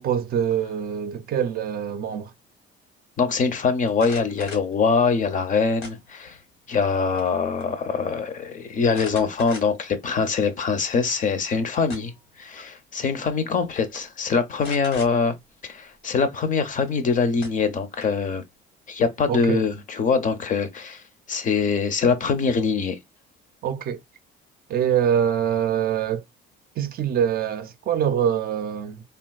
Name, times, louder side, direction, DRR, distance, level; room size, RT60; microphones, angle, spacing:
voice 1, 0.0-2.3 19.3-19.6 23.6-24.0 24.7-26.2 26.8-29.0, right 9 dB, 50° right, 0.5 m, -24 dB
voice 2, 3.2-6.4 6.7-12.1 12.4-15.3 15.7-18.4 18.9-21.0 21.3-23.0, left 5 dB, 40° left, 0.6 m, -23 dB
sound 1, 3.9-4.7 5.8-6.4 6.8-7.3 7.6-7.7 8.9-9.9 10.5-10.6 11.6-12.3 13.3-13.5 13.8-14.0 14.6-15.1 16.9-17.0 17.4-18.3, left 4 dB, 90° left, 1.4 m, -40 dB
3.4 x 2.5 x 2.2 m
cardioid pair, 120°, 20 cm